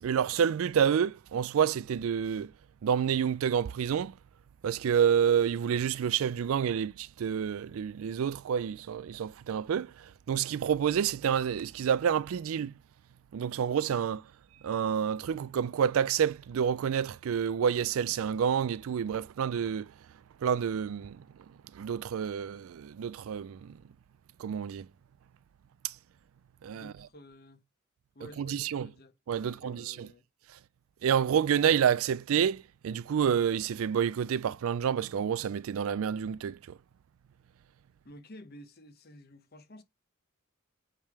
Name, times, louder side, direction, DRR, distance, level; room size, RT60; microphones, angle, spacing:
voice 1, 0.0-2.5 2.8-4.2 4.6-12.7 13.3-14.2 14.6-19.9 20.4-21.2 21.7-23.8 24.4-24.9 25.8-25.9 26.6-26.9 28.4-28.9 29.3-30.1 31.0-36.8, right 8 dB, 75° right, 0.3 m, -28 dB
voice 2, 26.7-27.7 28.1-29.1 29.4-30.2 38.0-39.8, equal, 45° left, 0.9 m, -51 dB
8.6 x 3.5 x 4.7 m
head